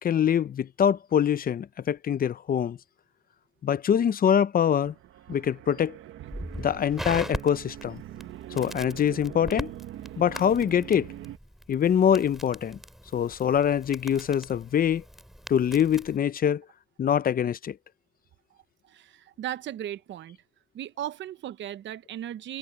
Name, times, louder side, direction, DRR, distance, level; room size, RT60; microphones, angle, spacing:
voice 1, 0.0-2.8 3.6-4.9 5.3-6.0 6.6-8.0 8.5-9.7 10.2-11.1 11.7-12.8 13.1-15.0 15.5-16.6 17.0-17.8, left 8 dB, 45° left, 0.7 m, -24 dB
sound 1, 4.7-11.4, right 13 dB, 85° right, 1.4 m, -43 dB
Crackle, 6.3-16.2, equal, ahead, 4.3 m, -41 dB
voice 2, 18.8-20.4 20.7-22.6, right 11 dB, 70° right, 0.9 m, -36 dB
cardioid pair, 90°, 20 cm